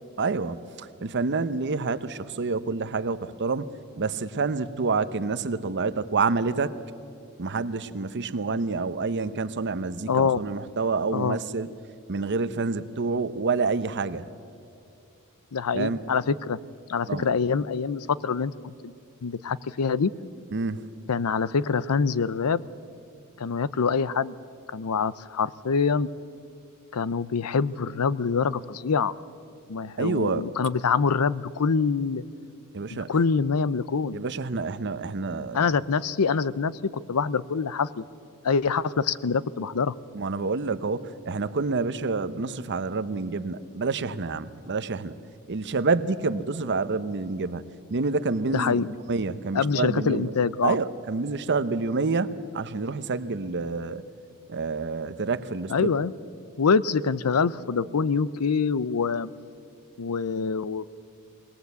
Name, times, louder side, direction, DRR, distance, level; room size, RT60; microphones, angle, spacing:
voice 1, 0.2-3.7 4.0-6.7 7.4-11.7 12.1-14.3 15.7-16.0 17.1-17.3 20.5-20.8 30.0-30.5 32.7-33.1 34.1-35.7 40.1-45.1 45.5-50.3 50.6-54.0 54.5-55.9, right 4 dB, 55° right, 13 dB, 0.8 m, -28 dB
voice 2, 10.1-10.4 11.1-11.4 15.5-16.6 16.9-18.9 19.2-20.1 21.1-22.6 23.4-24.3 24.7-26.1 26.9-29.1 29.7-32.2 32.9-34.2 35.5-36.7 37.1-38.0 38.4-39.9 48.5-48.9 49.5-50.8 55.7-56.1 56.6-59.3 60.0-60.9, left 5 dB, 90° left, 19 dB, 0.6 m, -25 dB
21.5 x 18.5 x 8.2 m, 2.5 s
head